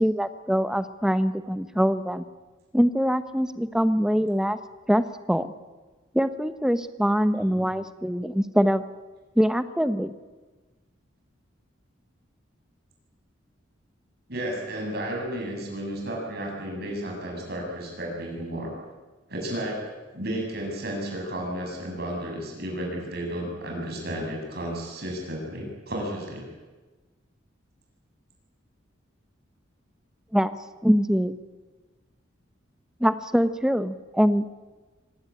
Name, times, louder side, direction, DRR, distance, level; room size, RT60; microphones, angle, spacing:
voice 1, 0.0-2.2 2.7-4.6 4.9-5.5 6.1-8.8 9.4-10.1 30.3-30.5 30.8-31.4 33.0-34.5, equal, 5° right, 11 dB, 1.0 m, -23 dB
voice 2, 14.3-18.7 19.3-19.8 20.1-26.4, right 1 dB, 55° right, 0 dB, 7.9 m, -33 dB
26.0 x 18.5 x 8.9 m, 1.3 s
head